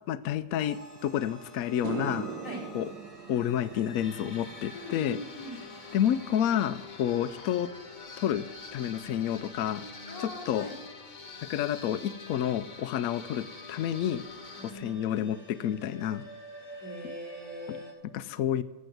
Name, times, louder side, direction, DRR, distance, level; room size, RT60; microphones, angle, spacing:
voice 1, 0.1-2.3 2.7-2.9 3.3-5.2 5.9-7.7 8.2-8.5 8.7-9.9 10.2-10.7 11.4-14.2 14.6-16.2 17.0-17.1 17.7-17.8 18.0-18.6, left 10 dB, 75° left, 13 dB, 0.8 m, -29 dB
sound 1, 0.6-17.9, right 1 dB, 20° right, 6.0 m, -51 dB
sound 2, 1.1-1.2 1.6-10.2 10.4-10.9 14.5-14.6 16.2-16.3 16.6-16.7 17.0-17.5, right 7 dB, 80° right, 1.3 m, -44 dB
sound 3, 4.0-14.7, left 4 dB, 35° left, 0.9 m, -46 dB
voice 2, 4.7-5.7 10.1-10.7 14.5-15.0 16.8-17.9, left 1 dB, 50° left, -4 dB, 4.6 m, -41 dB
16.0 x 7.5 x 7.9 m, 1.2 s
omnidirectional pair, 2.0 m